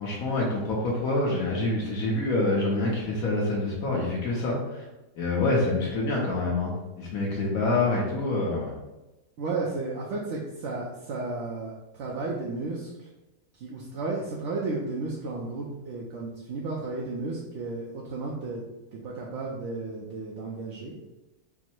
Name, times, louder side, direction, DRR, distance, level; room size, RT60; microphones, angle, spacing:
voice 1, 0.0-4.8 5.2-8.7, left 2 dB, 70° left, -3 dB, 1.2 m, -26 dB
voice 2, 9.4-13.1 13.5-18.6 18.9-20.9, right 3 dB, 60° right, -3 dB, 0.8 m, -33 dB
4.6 x 2.0 x 4.4 m, 1.0 s
omnidirectional pair, 1.7 m